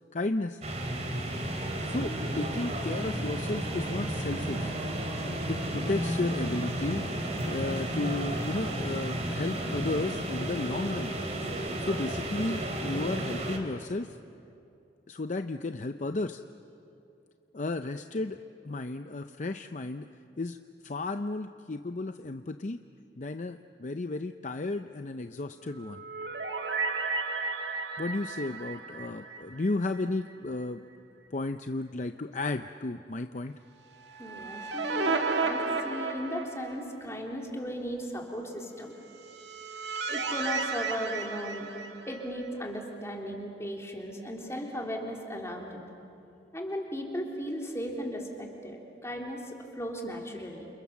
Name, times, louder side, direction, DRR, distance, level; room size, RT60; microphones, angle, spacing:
voice 1, 0.1-0.6 1.8-4.7 5.2-7.2 7.5-11.1 11.8-14.2 15.1-16.4 17.5-18.4 18.6-20.1 20.4-20.6 20.8-22.8 23.2-26.0 28.0-30.8 31.3-33.6, left 2 dB, 45° left, 8 dB, 0.6 m, -33 dB
sound 1, 0.6-13.6, right 1 dB, 40° right, 3.3 m, -33 dB
sound 2, 25.7-30.0 30.3-30.4 33.9-37.0 39.1-42.5, right 4 dB, 75° right, 1.9 m, -33 dB
voice 2, 34.2-38.9 40.1-41.7 42.1-45.8 46.5-50.7, equal, 15° left, 0 dB, 3.5 m, -36 dB
29.5 x 28.5 x 7.1 m, 2.6 s
head